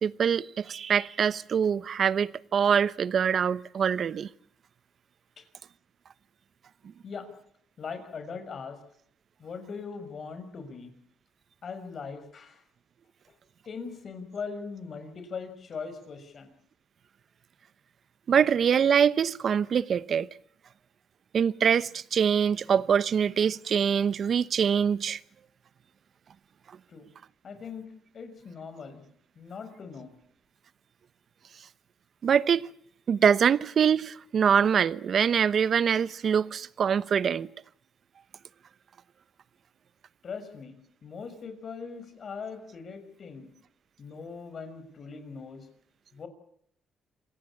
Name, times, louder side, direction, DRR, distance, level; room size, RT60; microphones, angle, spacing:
voice 1, 0.0-4.3 18.3-20.3 21.3-25.2 32.2-32.7 33.1-37.5, right 7 dB, 55° right, 0.9 m, -24 dB
voice 2, 7.8-8.8 9.4-10.9 11.6-12.6 13.7-16.5 26.9-27.1 27.4-27.9 28.1-29.0 29.4-30.1 40.2-40.8 41.0-43.5 44.0-45.7 46.1-46.3, left 5 dB, 50° left, 6.1 m, -40 dB
27.0 x 17.5 x 8.6 m
cardioid pair, 90°, 0 cm